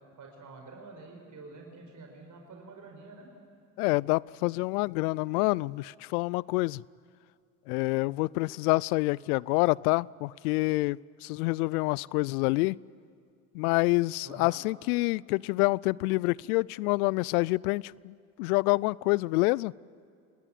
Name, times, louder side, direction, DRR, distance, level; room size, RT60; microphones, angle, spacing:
voice 1, 0.2-3.3 14.2-14.6, right 3 dB, 40° right, 2 dB, 5.0 m, -48 dB
voice 2, 3.8-6.8 7.7-12.8 13.5-19.7, left 23 dB, 80° left, 25 dB, 0.5 m, -27 dB
27.0 x 19.5 x 9.3 m, 2.4 s
hypercardioid pair, 70°, 44 cm